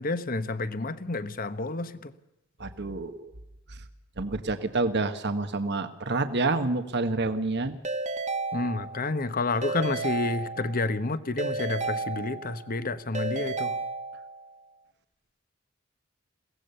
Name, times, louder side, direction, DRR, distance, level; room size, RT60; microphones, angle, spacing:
voice 1, 0.0-2.1 8.5-13.7, left 3 dB, 45° left, 13 dB, 1.2 m, -30 dB
voice 2, 2.6-3.3 3.7-3.8 4.2-7.8, right 3 dB, 60° right, 9 dB, 1.4 m, -28 dB
Keyboard (musical) / Ringtone, 7.8-9.2 9.6-10.9 11.4-12.7 13.1-14.5, right 3 dB, 35° right, 1.4 m, -32 dB
22.5 x 17.5 x 6.9 m, 0.89 s
head